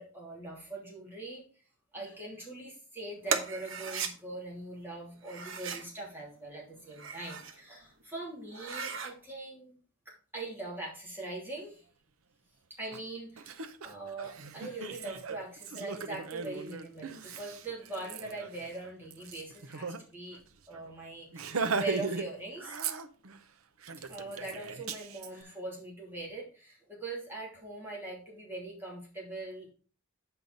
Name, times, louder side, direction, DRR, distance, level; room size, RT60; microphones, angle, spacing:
voice 1, 0.0-1.4 1.9-9.8 10.0-11.8 12.8-20.4 20.7-21.5 21.8-22.8 24.0-29.7, right 2 dB, 10° right, -4 dB, 2.9 m, -42 dB
sound 1, 3.3-4.1 5.2-5.9 6.8-7.6 8.0-8.1 8.5-9.1, right 6 dB, 60° right, 1.0 m, -36 dB
Laughter, 12.9-13.0 13.4-20.0 20.3-20.4 20.7-20.9 21.3-22.3 22.6-23.4 23.8-25.3, right 4 dB, 85° right, 0.7 m, -38 dB
8.0 x 5.5 x 4.0 m, 0.39 s
head